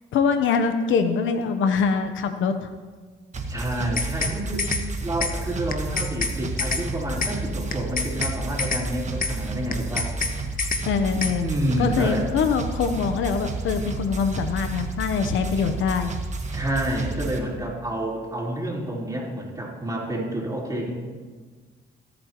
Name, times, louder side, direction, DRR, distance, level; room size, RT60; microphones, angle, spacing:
voice 1, 0.1-2.7 10.8-11.5 11.8-16.1, left 5 dB, 75° left, 8 dB, 0.9 m, -23 dB
sound 1, 3.3-17.4, right 3 dB, 35° right, 1.5 m, -31 dB
voice 2, 3.4-4.7 5.0-10.1 11.4-12.3 16.5-20.9, right 1 dB, 15° right, -4 dB, 3.9 m, -29 dB
sound 2, 3.7-4.3 4.6-4.8 5.2-5.3 5.7-6.3 6.6-6.8 7.2-7.3 7.7-8.3 8.6-8.8 9.2-9.3 9.7-10.3 10.6-10.8 11.2-11.3, left 5 dB, 45° left, 1.2 m, -26 dB
25.0 x 8.7 x 3.0 m, 1.5 s
cardioid pair, 90°, 20 cm